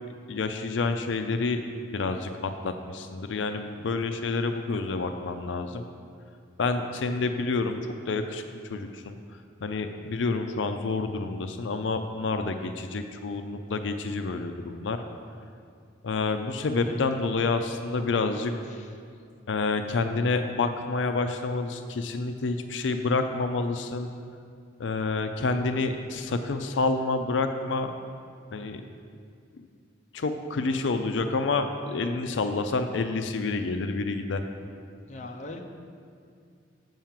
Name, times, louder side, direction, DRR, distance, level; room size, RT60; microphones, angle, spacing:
voice 1, 0.3-1.6 1.9-5.9 6.6-7.8 8.1-8.4 8.7-9.2 9.6-15.0 16.0-18.5 19.5-24.1 24.8-27.9 28.5-28.8 30.1-34.4, left 3 dB, 85° left, 7 dB, 0.5 m, -28 dB
voice 2, 16.8-17.1 18.7-18.9 35.1-35.6, left 2 dB, 40° left, 2 dB, 0.7 m, -40 dB
7.3 x 5.6 x 7.4 m, 2.3 s
head